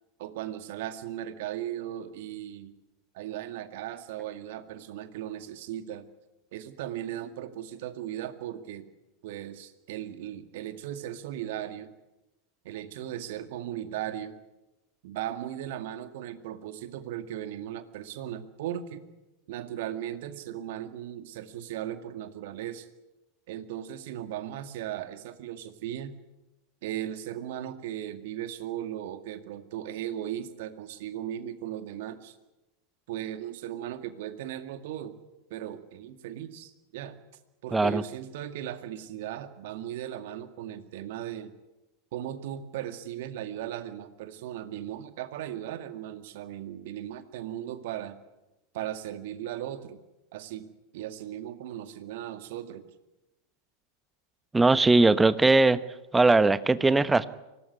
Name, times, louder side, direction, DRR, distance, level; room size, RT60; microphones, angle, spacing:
voice 1, 0.2-2.7 3.1-6.1 6.5-8.9 9.2-11.9 12.6-14.4 15.0-19.0 19.5-22.9 23.5-26.2 26.8-32.3 33.1-35.2 35.5-37.1 37.6-41.5 42.1-48.2 48.7-50.0 50.3-50.7 50.9-52.9, right 11 dB, 60° right, 9 dB, 2.1 m, -37 dB
voice 2, 37.7-38.0 54.5-55.8 56.1-57.2, right 3 dB, 10° right, 15 dB, 1.1 m, -20 dB
24.5 x 18.5 x 9.6 m, 1.0 s
figure-of-eight pair, 90°, 0 cm